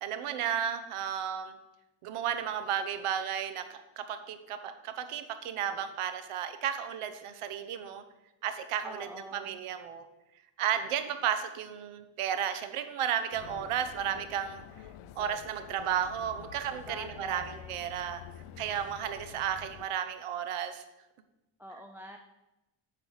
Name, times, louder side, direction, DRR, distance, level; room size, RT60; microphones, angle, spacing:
voice 1, 0.0-1.5 2.0-8.0 8.4-10.0 10.6-14.6 15.2-18.2 18.6-20.8, right 9 dB, 85° right, 9 dB, 1.0 m, -33 dB
voice 2, 8.8-9.6 16.7-17.9 21.6-22.2, equal, 5° right, 3 dB, 0.5 m, -46 dB
sound 1, 13.3-19.9, left 10 dB, 75° left, 0.6 m, -48 dB
8.7 x 4.8 x 7.2 m, 0.98 s
cardioid pair, 115°, 50 cm